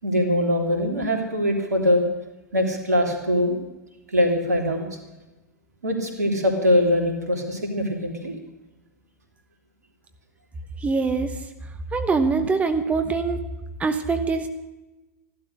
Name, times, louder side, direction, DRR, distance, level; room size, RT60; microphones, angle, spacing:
voice 1, 0.0-2.0 2.5-3.6 4.1-4.8 5.8-8.3, left 1 dB, 75° right, 3 dB, 3.2 m, -22 dB
voice 2, 10.8-11.4 11.9-13.4 13.8-14.5, right 4 dB, 15° right, 8 dB, 1.0 m, -23 dB
15.0 x 12.0 x 6.5 m, 1.1 s
figure-of-eight pair, 95°, 9 cm